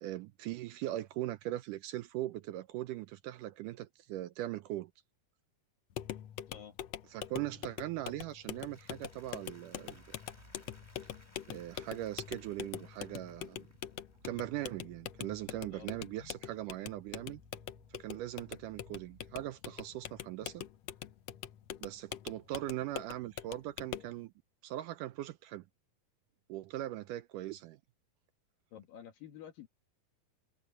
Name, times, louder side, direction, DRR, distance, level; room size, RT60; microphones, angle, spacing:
voice 1, 0.0-4.9 7.1-10.0 11.5-13.7 14.2-17.4 17.9-20.6 21.8-24.3 24.6-25.6 26.5-27.8, right 14 dB, 80° right, 1.9 m, -40 dB
sound 1, 5.9-24.2, left 11 dB, 90° left, 1.4 m, -44 dB
voice 2, 6.5-6.8 15.7-15.9 28.7-29.7, left 9 dB, 70° left, 3.3 m, -50 dB
Applause, 8.0-14.3, left 1 dB, 10° left, 2.4 m, -64 dB
sound 2, 9.4-20.7, right 1 dB, 15° right, 8.0 m, -64 dB
omnidirectional pair, 4.2 m